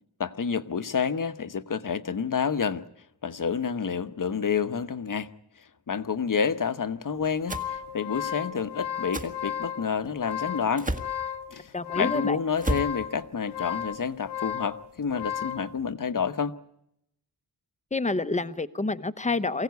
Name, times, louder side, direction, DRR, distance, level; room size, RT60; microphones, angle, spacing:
voice 1, 0.2-2.8 3.2-5.3 5.9-10.9 11.5-16.5, left 6 dB, 50° left, 11 dB, 1.1 m, -29 dB
sound 1, 7.2-15.7, left 9 dB, 65° left, 1.1 m, -34 dB
sound 2, 7.5-7.7 9.1-9.3 10.8-11.1 12.6-12.9, right 1 dB, 20° right, 1.6 m, -30 dB
voice 2, 11.7-12.4 17.9-19.6, left 3 dB, 15° left, 12 dB, 0.9 m, -28 dB
24.0 x 16.5 x 9.4 m, 0.81 s
wide cardioid pair, 125°, 41 cm